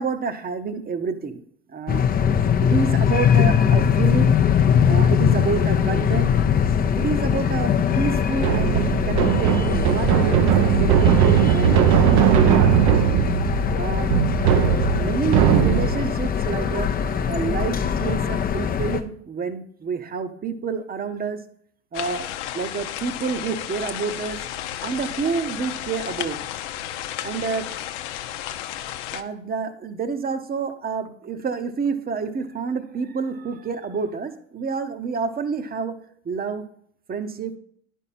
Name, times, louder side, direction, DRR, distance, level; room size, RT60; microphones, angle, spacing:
voice 1, 0.0-1.4 1.7-2.1 2.6-4.3 4.9-6.3 6.9-10.5 10.8-12.7 13.7-14.1 14.9-16.9 17.3-21.4 21.9-22.3 22.5-24.4 24.8-26.4 27.2-27.7 29.1-35.9 36.2-36.6 37.1-37.5, right 5 dB, 25° right, 9 dB, 1.0 m, -28 dB
amsterdam city ambience, 1.9-19.0, left 7 dB, 25° left, 0.6 m, -21 dB
sound 1, 8.3-16.1, right 10 dB, 55° right, 0.8 m, -19 dB
sound 2, 21.9-29.2, left 12 dB, 70° left, 0.8 m, -33 dB
10.5 x 5.5 x 4.3 m, 0.64 s
hypercardioid pair, 80°, 37 cm